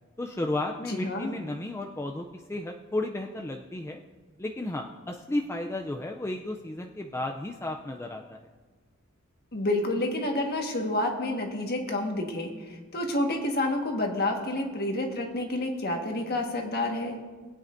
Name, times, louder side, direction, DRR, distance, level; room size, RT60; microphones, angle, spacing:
voice 1, 0.2-4.0 4.4-8.5, left 2 dB, 10° left, 2 dB, 0.4 m, -33 dB
voice 2, 0.9-1.3 9.5-17.2, left 1 dB, 50° left, 2 dB, 1.5 m, -29 dB
21.0 x 8.9 x 2.6 m, 1.4 s
head